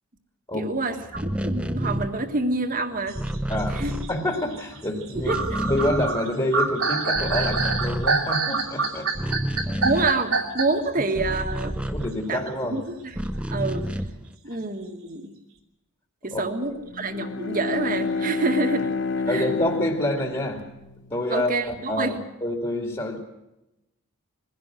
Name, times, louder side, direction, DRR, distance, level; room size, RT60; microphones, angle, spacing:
voice 1, 0.5-3.2 3.7-3.9 5.3-5.6 9.8-11.8 12.3-12.4 12.7-13.2 13.5-13.9 14.4-15.3 16.2-18.9 19.3-19.5 21.3-22.2, right 3 dB, 40° right, 7 dB, 1.7 m, -27 dB
sound 1, 1.0-4.7 5.0-6.7 7.0-12.6 13.1-14.3, right 1 dB, 5° right, 0.7 m, -30 dB
sound 2, 3.1-10.9, right 4 dB, 75° right, 2.7 m, -26 dB
voice 2, 4.1-5.3 5.6-9.3 9.7-9.9 11.9-12.8 16.3-16.4 19.3-20.6 21.1-23.2, left 1 dB, 25° left, 2 dB, 2.5 m, -27 dB
Bowed string instrument, 16.9-21.5, left 4 dB, 55° left, 1.1 m, -29 dB
21.5 x 16.5 x 7.7 m, 0.92 s
head